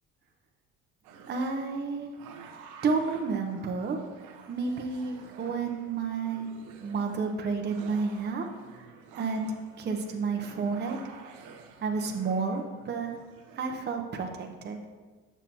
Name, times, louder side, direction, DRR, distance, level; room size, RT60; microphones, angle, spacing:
sound 1, 1.0-13.6, right 5 dB, 85° right, 0.8 m, -51 dB
voice 1, 1.3-2.1 2.8-4.0 4.5-6.5 6.8-8.5 9.2-11.0 11.8-13.1 13.6-14.8, right 4 dB, 35° right, 3 dB, 0.8 m, -31 dB
7.1 x 6.9 x 2.9 m, 1.3 s
supercardioid pair, 80°, 30 cm